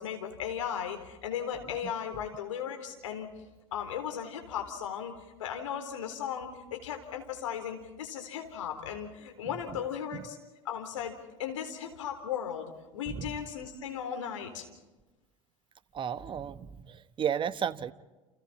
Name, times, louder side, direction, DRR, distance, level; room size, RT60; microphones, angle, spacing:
voice 1, 0.0-3.3 3.7-5.1 5.4-10.4 10.7-11.1 11.4-14.7, left 8 dB, 75° left, 6 dB, 3.8 m, -36 dB
voice 2, 15.9-17.9, right 8 dB, 30° right, 13 dB, 1.1 m, -33 dB
29.5 x 29.0 x 4.3 m, 1.2 s
hypercardioid pair, 75°, 16 cm